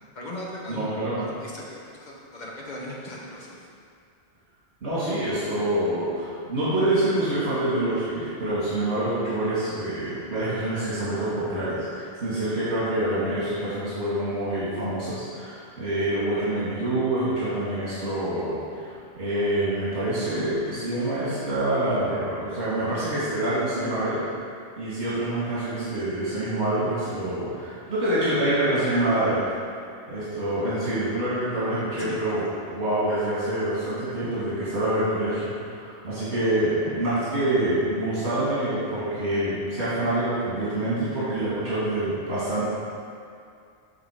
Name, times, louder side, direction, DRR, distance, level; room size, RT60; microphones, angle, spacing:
voice 1, 0.1-0.9 1.2-3.7 32.0-32.2, left 1 dB, 45° left, -4 dB, 1.1 m, -38 dB
voice 2, 0.7-1.3 4.8-24.2 24.8-29.4 30.1-42.6, right 1 dB, 70° right, -11 dB, 1.9 m, -26 dB
7.3 x 3.5 x 4.8 m, 2.4 s
omnidirectional pair, 1.1 m